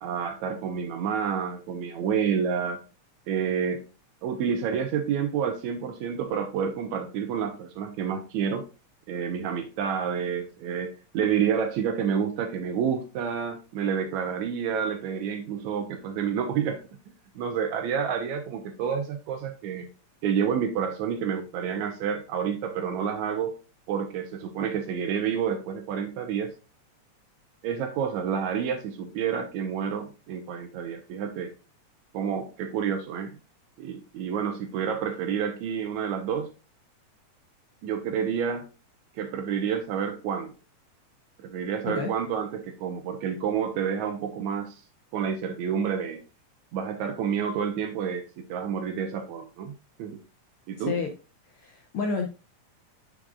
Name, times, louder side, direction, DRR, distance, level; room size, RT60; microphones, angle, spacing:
voice 1, 0.0-2.8 3.3-3.8 4.2-8.6 9.1-16.8 17.4-19.9 20.2-23.5 23.9-26.5 27.6-31.5 32.1-33.4 33.8-36.5 37.8-38.7 39.2-40.5 41.4-44.8 45.1-46.2 46.7-49.7 50.0-50.2 50.7-51.0, right 7 dB, 80° right, 2.0 m, -29 dB
voice 2, 50.8-51.1 51.4-52.3, left 5 dB, 75° left, 1.3 m, -30 dB
9.1 x 4.9 x 2.4 m
omnidirectional pair, 3.4 m